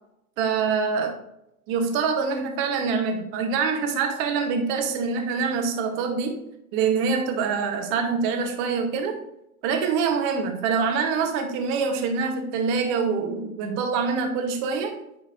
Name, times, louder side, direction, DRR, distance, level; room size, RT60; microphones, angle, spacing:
voice 1, 0.4-1.2 1.7-6.5 6.7-9.2 9.6-15.0, right 5 dB, 25° right, 5 dB, 0.9 m, -25 dB
9.1 x 4.1 x 2.5 m, 0.82 s
hypercardioid pair, 135°, 44 cm